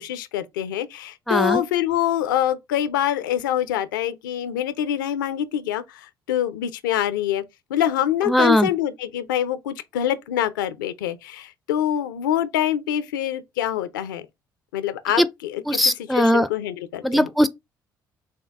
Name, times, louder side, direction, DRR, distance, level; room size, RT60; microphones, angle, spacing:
voice 1, 0.0-7.4 7.7-14.2 14.7-15.6 16.0-17.3, left 11 dB, 75° left, 0.4 m, -25 dB
voice 2, 1.3-1.6 8.3-8.7 15.2-15.3 15.7-16.5 17.0-17.5, equal, ahead, 0.4 m, -19 dB
6.5 x 2.2 x 3.3 m
figure-of-eight pair, 50°, 11 cm